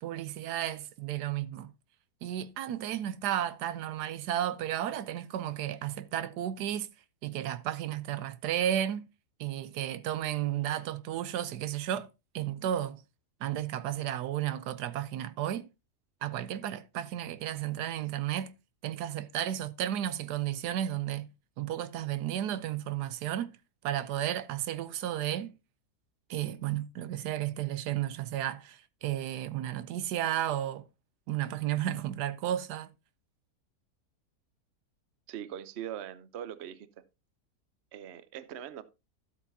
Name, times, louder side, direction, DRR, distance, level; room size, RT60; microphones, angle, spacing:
voice 1, 0.0-1.7 2.2-6.9 7.2-9.1 9.4-12.1 12.3-13.0 13.4-15.7 16.2-18.5 18.8-21.3 21.6-23.6 23.8-25.5 26.3-30.8 31.3-32.9, right 11 dB, 80° right, 1.2 m, -33 dB
voice 2, 35.3-36.9 37.9-38.8, right 10 dB, 55° right, 0.9 m, -41 dB
12.5 x 8.1 x 2.7 m
omnidirectional pair, 1.7 m